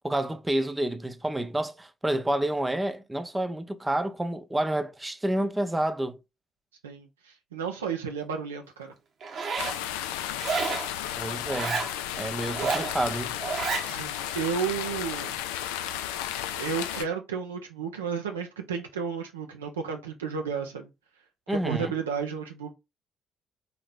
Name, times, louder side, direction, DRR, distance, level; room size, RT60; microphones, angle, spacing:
voice 1, 0.0-6.2 11.2-11.8 12.2-13.3 21.5-21.9, right 1 dB, 15° right, 0.6 m, -29 dB
voice 2, 6.8-8.9 13.8-15.4 16.6-20.9 21.5-22.7, right 6 dB, 80° right, 0.4 m, -32 dB
Zipper (clothing), 9.2-9.8 10.4-10.9 11.5-11.9 12.5-12.9 13.4-13.9, right 5 dB, 50° right, 0.8 m, -30 dB
sound 1, 9.6-17.0, left 11 dB, 70° left, 0.3 m, -33 dB
4.0 x 2.8 x 3.4 m
figure-of-eight pair, 45°, 0 cm